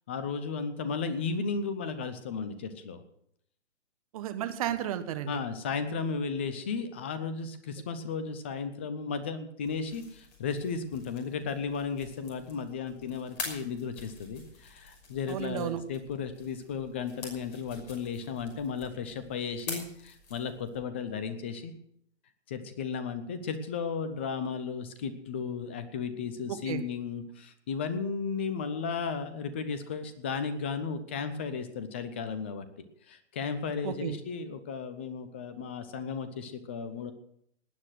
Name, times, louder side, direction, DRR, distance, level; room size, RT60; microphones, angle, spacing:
voice 1, 0.1-3.0 5.3-21.7 22.5-32.7 33.1-37.1, left 5 dB, 10° left, 11 dB, 0.5 m, -34 dB
voice 2, 4.1-5.4 15.3-15.8 26.5-26.8 33.8-34.2, right 11 dB, 30° right, 10 dB, 1.3 m, -33 dB
sound 1, 9.7-20.8, left 3 dB, 35° left, 5.9 m, -46 dB
18.5 x 9.7 x 6.3 m, 0.71 s
figure-of-eight pair, 135°, 36 cm